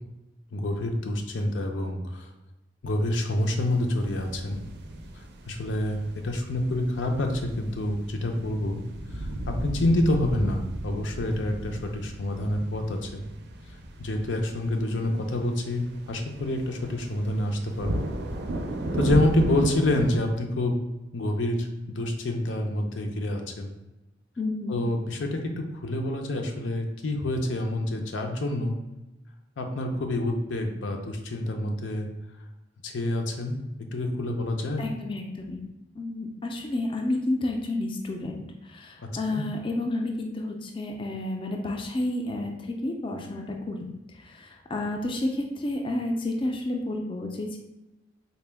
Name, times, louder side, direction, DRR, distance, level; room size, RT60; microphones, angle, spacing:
voice 1, 0.5-2.3 2.8-4.6 5.5-8.8 9.1-13.2 14.0-18.1 18.9-20.8 21.1-23.7 24.7-25.5 25.8-28.7 29.6-32.1 32.8-33.6 33.9-34.8 39.3-39.4, left 1 dB, 90° left, 3 dB, 0.6 m, -27 dB
sound 1, 3.4-20.3, right 1 dB, 65° right, 0.4 m, -35 dB
voice 2, 24.4-24.8 34.8-35.6 36.0-43.9 44.2-47.6, left 2 dB, 30° left, 2 dB, 0.4 m, -30 dB
4.1 x 2.2 x 3.4 m, 0.99 s
head